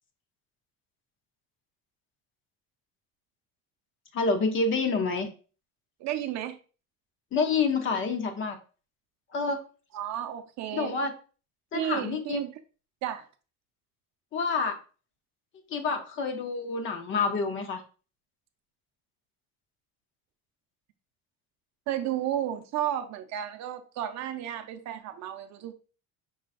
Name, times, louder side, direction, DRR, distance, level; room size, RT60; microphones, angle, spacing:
voice 1, 4.1-5.3 7.3-8.6 9.3-9.6 10.7-11.1 11.7-12.4 14.3-14.8 15.7-17.8, left 4 dB, 35° left, 0.7 m, -28 dB
voice 2, 6.0-6.6 9.9-11.0 11.7-12.5 13.0-13.3 21.9-25.7, right 11 dB, 55° right, 0.5 m, -32 dB
5.6 x 3.7 x 2.4 m
cardioid pair, 170°, 33 cm